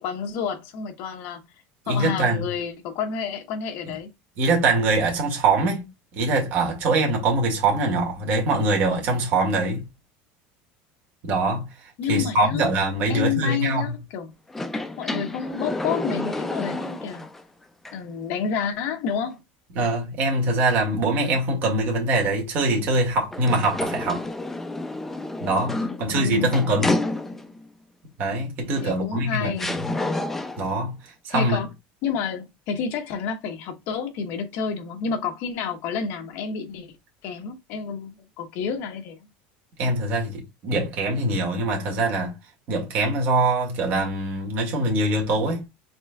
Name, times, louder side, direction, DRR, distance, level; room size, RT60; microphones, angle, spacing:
voice 1, 0.0-1.4 1.9-4.1 12.0-12.7 13.1-14.3 15.0-17.3 17.9-19.4 25.8-26.9 28.8-29.7 31.3-31.7 32.0-37.0 37.2-39.3, left 6 dB, 50° left, 1.1 m, -29 dB
voice 2, 1.9-2.5 4.4-5.8 6.1-9.8 11.2-11.7 12.1-13.9 19.8-24.3 25.4-27.0 28.2-29.9 30.6-31.0 31.2-31.6 39.8-42.4 42.7-45.6, right 2 dB, 40° right, 1.9 m, -23 dB
sound 1, 14.5-17.4 17.8-17.9 23.3-27.6 28.8-28.9 29.6-30.7, left 2 dB, 5° left, 0.4 m, -29 dB
4.3 x 4.2 x 2.3 m
cardioid pair, 165°, 5 cm